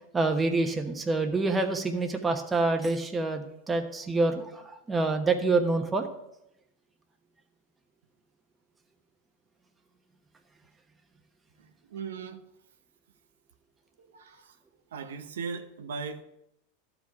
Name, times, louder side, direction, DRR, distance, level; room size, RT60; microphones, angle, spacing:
voice 1, 0.1-6.0, right 3 dB, 15° right, 5 dB, 1.0 m, -27 dB
voice 2, 11.6-12.4 14.0-14.6 14.9-16.2, right 5 dB, 90° right, 7 dB, 0.8 m, -38 dB
12.5 x 5.0 x 4.7 m, 0.82 s
hypercardioid pair, 120°, 0 cm